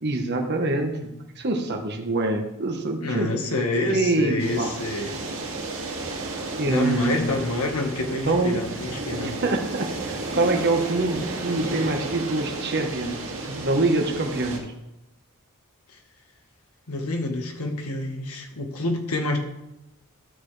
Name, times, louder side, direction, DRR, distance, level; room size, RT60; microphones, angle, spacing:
voice 1, 0.0-3.3 3.9-4.7 6.6-7.3 8.3-8.6 9.1-13.2 13.5-14.6, right 2 dB, 50° right, 3 dB, 1.2 m, -25 dB
voice 2, 3.0-5.3 6.6-9.4 16.9-19.4, left 2 dB, 90° left, 3 dB, 1.4 m, -27 dB
sound 1, 4.4-14.6, right 3 dB, 65° right, 2.1 m, -33 dB
12.0 x 6.8 x 3.3 m, 0.90 s
head